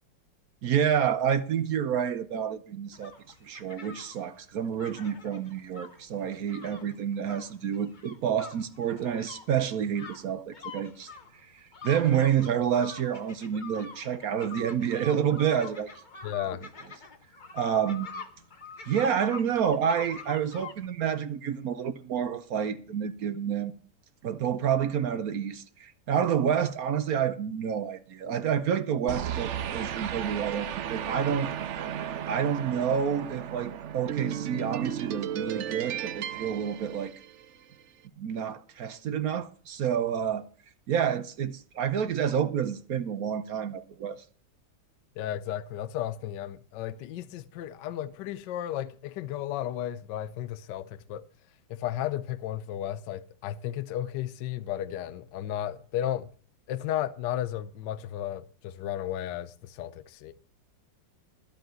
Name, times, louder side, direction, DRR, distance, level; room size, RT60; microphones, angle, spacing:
voice 1, 0.6-3.1 3.4-11.1 11.5-15.9 17.5-18.1 18.9-23.7 24.2-31.5 32.3-37.1 38.2-40.4 40.9-44.2, right 8 dB, 60° right, 1.0 m, -29 dB
sound 1, 2.9-20.9, left 4 dB, 35° left, 0.9 m, -45 dB
voice 2, 16.2-16.6 45.2-51.2 51.7-56.3 56.7-60.3, left 11 dB, 70° left, 1.3 m, -34 dB
sound 2, 29.1-37.6, right 9 dB, 85° right, 0.6 m, -34 dB
13.5 x 4.9 x 9.1 m
omnidirectional pair, 2.1 m